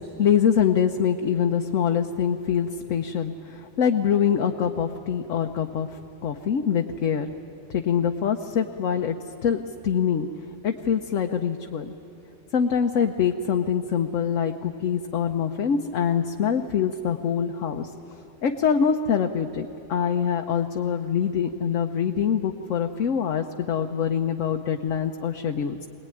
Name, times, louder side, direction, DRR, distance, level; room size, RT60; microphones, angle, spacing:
voice 1, 0.0-5.9 6.2-7.3 7.7-9.2 9.4-10.3 10.6-11.9 12.5-17.9 18.4-25.9, left 7 dB, 90° left, 4 dB, 1.2 m, -24 dB
22.5 x 19.5 x 9.8 m, 2.9 s
omnidirectional pair, 1.3 m